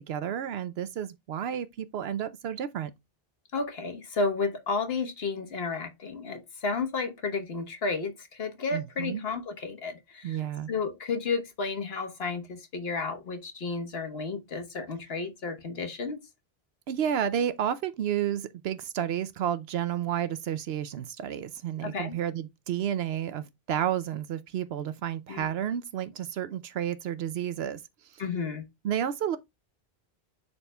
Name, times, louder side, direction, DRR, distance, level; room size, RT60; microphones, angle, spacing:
voice 1, 0.0-2.9 8.7-9.2 10.2-10.7 16.9-28.2 28.8-29.4, right 10 dB, 80° right, 0.8 m, -31 dB
voice 2, 3.5-10.4 10.7-16.2 21.8-22.2 25.3-25.5 28.2-28.7, left 4 dB, 70° left, 1.5 m, -32 dB
11.0 x 4.2 x 2.3 m
omnidirectional pair, 1.1 m